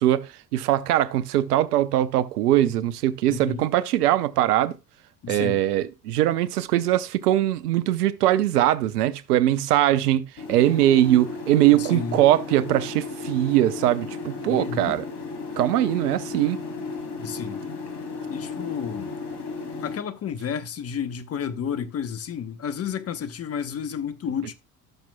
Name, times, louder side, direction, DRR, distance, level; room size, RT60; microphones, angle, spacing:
voice 1, 0.0-4.8 5.3-10.2 10.5-15.0 15.6-16.6, right 13 dB, 70° right, 0.7 m, -21 dB
voice 2, 3.3-3.7 5.2-5.6 11.7-12.2 14.4-15.0 17.2-17.6 18.3-19.1 19.8-24.5, left 7 dB, 30° left, 0.9 m, -31 dB
sound 1, 10.4-20.0, left 4 dB, 50° left, 2.6 m, -34 dB
17.0 x 5.9 x 2.2 m
figure-of-eight pair, 65°, 48 cm